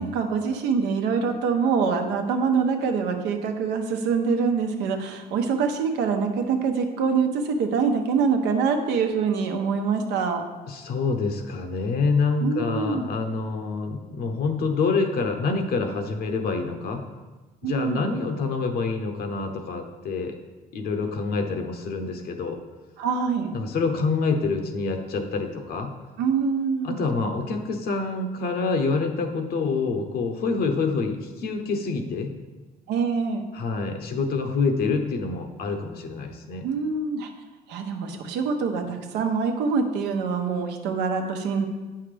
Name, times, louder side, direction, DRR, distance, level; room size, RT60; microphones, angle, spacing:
voice 1, 0.0-10.4 12.4-13.1 17.6-18.0 23.0-23.5 26.2-27.0 32.9-33.4 36.6-37.3 37.7-41.7, right 5 dB, 85° right, 4 dB, 0.9 m, -25 dB
voice 2, 10.7-17.0 17.6-20.4 20.7-22.6 23.5-25.9 26.8-32.3 33.5-36.7, left 4 dB, 65° left, 5 dB, 0.9 m, -26 dB
8.5 x 5.7 x 3.4 m, 1.2 s
cardioid pair, 110°, 17 cm